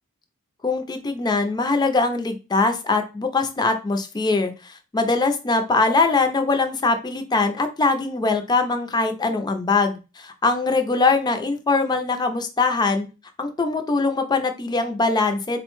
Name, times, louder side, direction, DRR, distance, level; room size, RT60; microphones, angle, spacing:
voice 1, 0.6-13.1 13.4-15.6, left 3 dB, 20° left, 6 dB, 0.4 m, -22 dB
4.0 x 2.1 x 3.0 m, 0.30 s
head